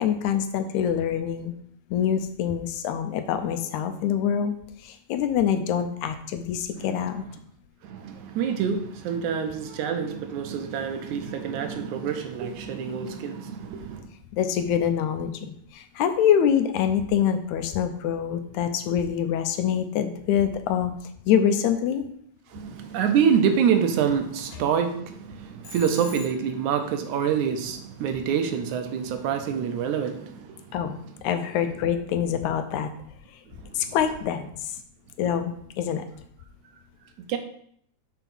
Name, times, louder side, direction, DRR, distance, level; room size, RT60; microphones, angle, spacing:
voice 1, 0.0-1.5 1.9-4.6 4.8-7.2 14.3-20.9 21.3-22.0 30.7-31.0 31.2-32.9 33.8-34.5 35.2-36.0, left 8 dB, 80° left, 8 dB, 2.0 m, -25 dB
voice 2, 7.8-14.1 22.5-30.8 33.6-33.9 37.3-37.4, right 7 dB, 80° right, 7 dB, 2.1 m, -26 dB
Telephone, 25.6-26.7, left 4 dB, 60° left, 2.1 m, -43 dB
5.9 x 5.7 x 5.4 m, 0.67 s
omnidirectional pair, 3.5 m